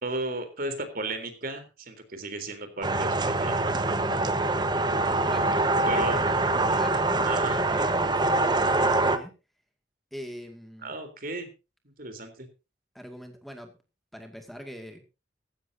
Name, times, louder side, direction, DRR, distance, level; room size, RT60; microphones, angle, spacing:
voice 1, 0.0-3.6 5.9-6.2 7.2-7.6 10.8-11.5 11.8-12.5, right 2 dB, 55° right, 8 dB, 3.7 m, -35 dB
sound 1, 2.8-9.2, right 2 dB, 25° right, 1.3 m, -24 dB
voice 2, 5.2-9.3 10.1-10.9 12.9-13.8 14.1-15.1, equal, ahead, 4 dB, 2.2 m, -42 dB
16.5 x 15.5 x 2.8 m, 0.30 s
head